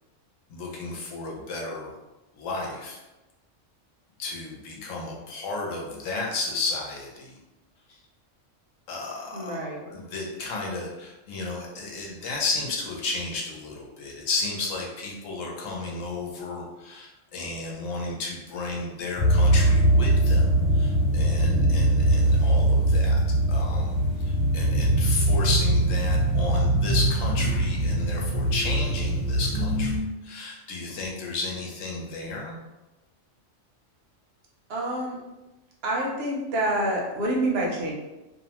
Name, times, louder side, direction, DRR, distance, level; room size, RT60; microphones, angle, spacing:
voice 1, 0.5-2.0 2.3-3.0 4.2-7.4 7.9-8.0 8.9-20.5 20.7-23.2 23.5-29.9 30.2-32.6, left 3 dB, 90° left, -1 dB, 1.1 m, -33 dB
voice 2, 9.3-9.9 34.7-35.2 35.8-37.9, right 1 dB, 60° right, -2 dB, 0.8 m, -27 dB
sound 1, 19.2-30.0, right 1 dB, 50° left, 0.8 m, -22 dB
2.7 x 2.1 x 2.8 m, 1.0 s
omnidirectional pair, 1.3 m